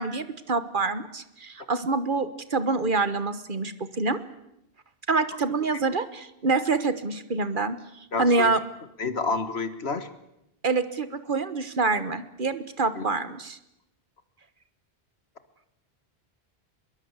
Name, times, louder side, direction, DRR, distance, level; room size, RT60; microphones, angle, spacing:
voice 1, 0.0-4.2 5.1-8.6 10.6-13.6, right 3 dB, 55° right, 12 dB, 1.4 m, -26 dB
voice 2, 8.1-8.5 9.0-10.1 13.0-13.1, left 4 dB, 85° left, 10 dB, 1.9 m, -29 dB
24.0 x 22.0 x 8.2 m, 0.86 s
omnidirectional pair, 1.0 m